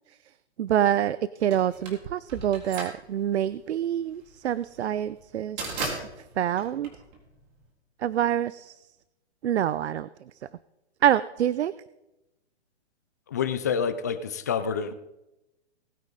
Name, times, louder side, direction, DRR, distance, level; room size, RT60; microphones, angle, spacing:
voice 1, 0.6-5.8 6.4-6.9 8.0-8.8 9.4-10.1 11.0-11.7, right 10 dB, 80° right, 17 dB, 0.6 m, -26 dB
sound 1, 1.5-7.6, right 3 dB, 40° right, 3.8 m, -37 dB
voice 2, 13.3-14.9, left 7 dB, 15° left, 11 dB, 0.3 m, -28 dB
19.5 x 9.0 x 3.8 m, 0.94 s
hypercardioid pair, 150°, 33 cm